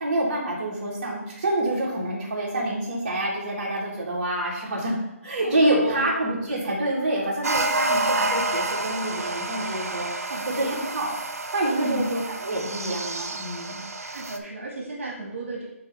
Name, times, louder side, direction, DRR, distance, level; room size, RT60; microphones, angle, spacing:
voice 1, 0.0-5.0 5.2-10.3 10.6-11.1 11.5-13.9, right 1 dB, 35° right, -6 dB, 2.3 m, -27 dB
voice 2, 5.4-6.1 10.3-10.7 11.6-12.1 14.1-15.7, right 2 dB, 60° right, -2 dB, 2.0 m, -33 dB
sound 1, 7.4-14.4, right 2 dB, 80° right, 0.9 m, -29 dB
8.7 x 3.0 x 5.8 m, 0.90 s
hypercardioid pair, 170°, 8 cm